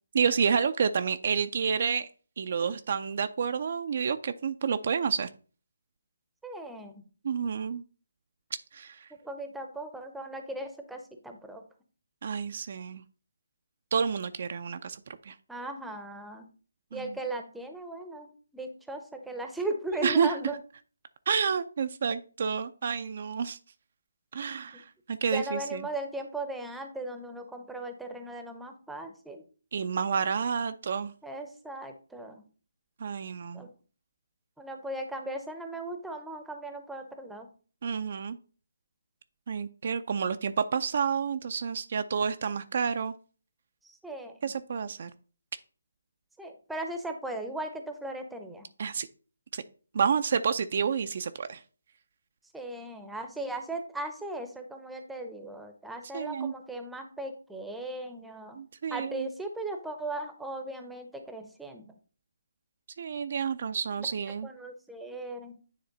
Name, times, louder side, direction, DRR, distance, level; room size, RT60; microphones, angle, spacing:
voice 1, 0.1-2.1 2.4-5.3 7.2-7.8 8.7-9.1 12.2-13.0 13.9-15.3 16.9-17.2 20.0-20.4 21.3-23.6 24.3-25.9 29.7-31.1 33.0-33.7 37.8-38.4 39.5-43.1 44.4-45.1 48.8-49.1 49.5-49.6 49.9-51.6 56.1-56.5 58.6-59.3 63.0-64.5, right 6 dB, 50° right, 10 dB, 0.4 m, -29 dB
voice 2, 6.4-6.9 9.2-11.6 15.5-16.4 16.9-18.3 18.5-20.6 25.3-29.4 31.2-32.4 33.5-33.7 34.6-37.5 43.8-44.3 46.4-48.7 52.5-58.6 58.9-61.9 64.4-65.6, right 2 dB, 5° right, 5 dB, 0.7 m, -37 dB
9.5 x 3.2 x 3.9 m, 0.39 s
figure-of-eight pair, 155°, 0 cm